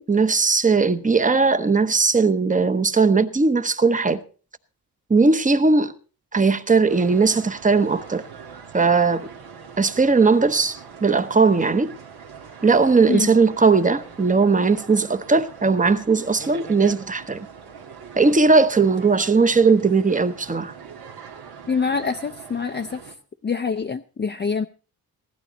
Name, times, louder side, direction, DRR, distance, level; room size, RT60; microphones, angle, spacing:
voice 1, 0.0-4.2 5.1-5.9 6.3-8.2 8.7-9.3 9.8-11.9 12.6-17.5 18.2-20.7, right 4 dB, 20° right, 0.9 m, -18 dB
sound 1, 6.9-23.1, right 6 dB, 75° right, 1.6 m, -42 dB
voice 2, 21.7-23.1 23.4-24.7, left 5 dB, 25° left, 0.5 m, -25 dB
15.5 x 12.0 x 4.0 m
cardioid pair, 80°, 39 cm